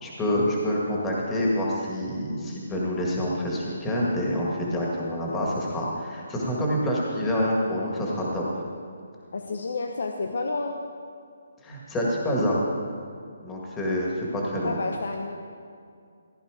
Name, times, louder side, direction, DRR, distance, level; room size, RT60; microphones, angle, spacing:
voice 1, 0.0-8.4 11.6-12.6 13.4-14.8, equal, 10° left, -4 dB, 1.9 m, -27 dB
voice 2, 9.3-10.8 14.6-15.4, left 3 dB, 70° left, 4 dB, 0.9 m, -30 dB
15.5 x 10.0 x 5.0 m, 2.3 s
hypercardioid pair, 160°, 0 cm